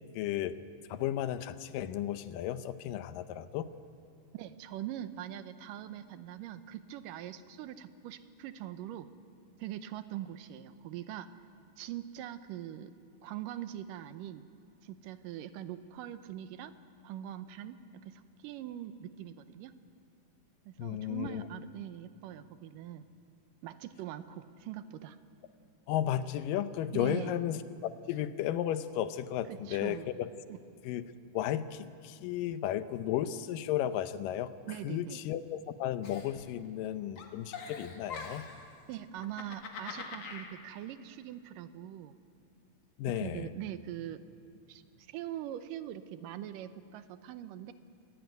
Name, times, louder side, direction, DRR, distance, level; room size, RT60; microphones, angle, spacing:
voice 1, 0.2-0.6 0.9-3.7 20.8-21.4 25.9-30.3 30.8-31.0 31.3-34.5 34.8-38.5 43.0-43.5, left 11 dB, 85° left, 12 dB, 2.5 m, -34 dB
voice 2, 4.3-9.1 9.6-11.3 11.8-12.9 13.2-14.4 14.8-16.7 17.0-19.7 20.7-23.1 23.6-25.2 26.9-27.4 29.5-30.1 30.5-30.6 34.7-35.2 38.9-42.1 43.2-44.2 44.7-47.7, right 12 dB, 85° right, 12 dB, 2.4 m, -42 dB
Giggle, 36.0-36.9 37.2-38.6 39.2-40.5, left 5 dB, 50° left, 2.7 m, -43 dB
25.0 x 15.5 x 9.4 m, 2.4 s
omnidirectional pair, 3.8 m